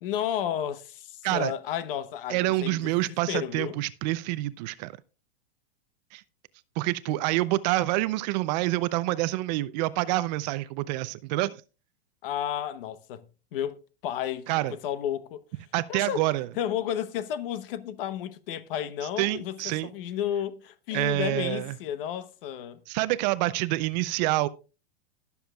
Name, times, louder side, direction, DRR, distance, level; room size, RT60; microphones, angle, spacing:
voice 1, 0.0-3.0 3.3-3.8 12.2-13.3 13.5-15.4 15.9-16.3 16.6-22.8, left 10 dB, 60° left, 1.0 m, -32 dB
voice 2, 2.3-4.9 6.1-6.2 6.8-11.6 14.5-14.7 15.7-16.5 19.2-19.9 20.9-21.7 22.9-24.5, right 18 dB, 45° right, 0.5 m, -27 dB
21.0 x 7.0 x 2.3 m
hypercardioid pair, 130°, 32 cm